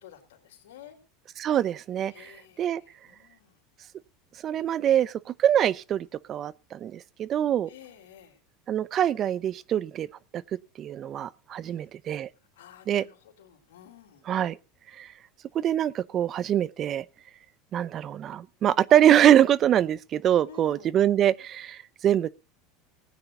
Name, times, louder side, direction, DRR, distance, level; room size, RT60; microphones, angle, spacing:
voice 1, 0.0-1.0 2.1-3.6 7.7-8.4 11.6-11.9 12.6-14.2 20.4-20.9, left 9 dB, 85° left, 3.7 m, -51 dB
voice 2, 1.4-2.3 2.6-2.8 4.4-7.7 8.7-10.1 10.3-10.4 10.8-12.3 12.9-13.0 14.3-14.6 15.0-15.1 15.5-17.0 17.7-22.3, right 10 dB, 40° right, 0.7 m, -24 dB
19.5 x 9.6 x 3.9 m
supercardioid pair, 105°, 0 cm